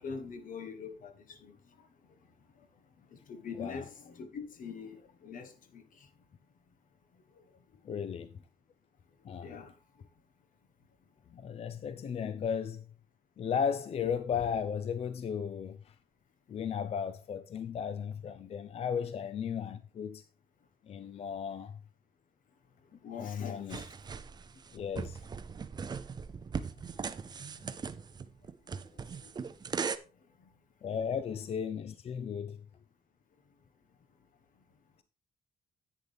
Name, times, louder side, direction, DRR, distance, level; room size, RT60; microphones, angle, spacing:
voice 1, 0.0-1.5 3.3-5.8 7.9-8.0 9.4-9.7 23.0-23.9, left 5 dB, 60° left, 1.3 m, -43 dB
voice 2, 7.8-8.4 9.2-9.5 11.3-12.8 13.4-16.0 16.5-20.2 20.9-21.8 23.2-23.8 24.7-25.2 30.8-32.6, left 7 dB, 40° left, 0.5 m, -35 dB
sound 1, 23.7-30.0, right 6 dB, 25° right, 0.5 m, -39 dB
10.5 x 8.3 x 3.4 m
cardioid pair, 160°, 16 cm